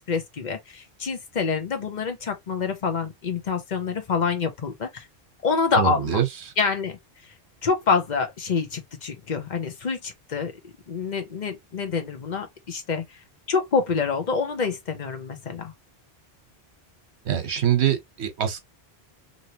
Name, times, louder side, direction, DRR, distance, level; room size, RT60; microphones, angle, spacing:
voice 1, 0.0-5.1 5.4-6.2 6.6-7.0 7.6-13.0 13.5-15.7, left 5 dB, 45° left, 0.9 m, -27 dB
voice 2, 5.8-6.3 17.2-18.6, right 9 dB, 90° right, 1.1 m, -23 dB
3.0 x 2.7 x 2.7 m
omnidirectional pair, 1.1 m